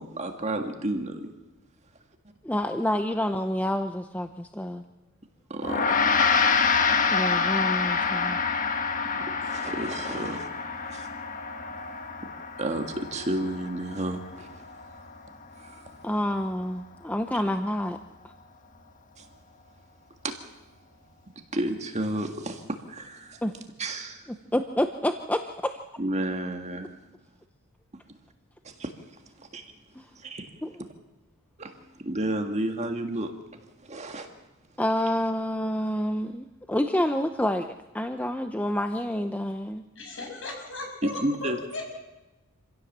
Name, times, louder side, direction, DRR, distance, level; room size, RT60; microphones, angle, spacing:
voice 1, 0.0-1.3 5.5-6.1 9.1-10.5 10.9-11.1 12.6-14.6 15.6-15.9 19.2-19.3 20.2-20.4 21.5-23.4 23.8-24.3 26.0-27.0 28.6-28.9 29.4-29.6 30.2-30.5 31.6-31.7 32.0-33.3 33.8-34.3 41.0-41.6, right 1 dB, 30° right, 5 dB, 1.8 m, -31 dB
voice 2, 2.4-4.8 7.1-8.4 16.0-18.0 23.4-23.5 24.3-25.8 30.0-30.1 30.6-30.8 34.8-39.8, left 1 dB, 5° left, 7 dB, 0.6 m, -28 dB
Gong, 5.6-15.2, left 5 dB, 35° left, 1.3 m, -27 dB
voice 3, 39.9-42.0, left 2 dB, 60° left, 1 dB, 6.6 m, -37 dB
26.5 x 16.0 x 7.4 m, 1.0 s
head